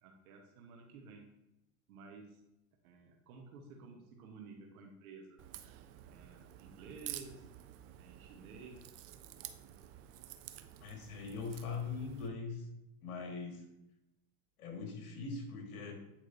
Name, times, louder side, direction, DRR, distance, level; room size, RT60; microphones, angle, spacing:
voice 1, 0.0-1.4 1.9-2.4 2.8-5.4 6.1-7.5 8.0-8.9, right 4 dB, 75° right, 2 dB, 1.1 m, -53 dB
Crack, 5.4-12.3, right 12 dB, 35° right, 0.4 m, -50 dB
voice 2, 10.8-12.7 13.0-13.7 14.6-15.9, left 4 dB, 75° left, 3 dB, 1.8 m, -41 dB
8.6 x 4.5 x 2.6 m, 0.88 s
supercardioid pair, 110°, 44 cm